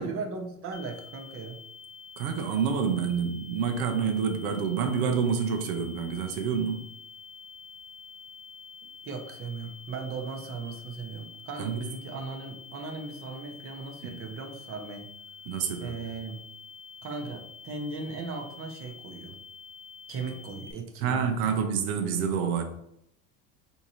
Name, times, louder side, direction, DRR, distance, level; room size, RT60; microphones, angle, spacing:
voice 1, 0.0-1.6 9.0-15.1 15.8-16.4 17.0-19.4 20.1-21.6, right 4 dB, 30° right, 2 dB, 0.7 m, -37 dB
sound 1, 0.7-20.7, left 6 dB, 25° left, 0.7 m, -47 dB
voice 2, 2.2-6.8 11.6-11.8 14.0-14.2 15.5-16.0 21.0-22.6, right 6 dB, 75° right, 5 dB, 0.7 m, -28 dB
3.6 x 2.7 x 2.9 m, 0.75 s
supercardioid pair, 105°, 44 cm